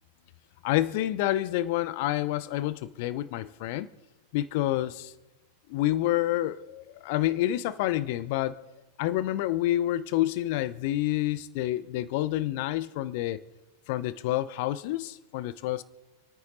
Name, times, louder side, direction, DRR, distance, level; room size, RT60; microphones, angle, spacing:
voice 1, 0.6-3.9 4.3-5.1 5.7-8.6 9.0-13.4 13.9-15.8, left 14 dB, 50° left, 0.7 m, -28 dB
28.5 x 9.6 x 4.0 m
figure-of-eight pair, 90°, 0 cm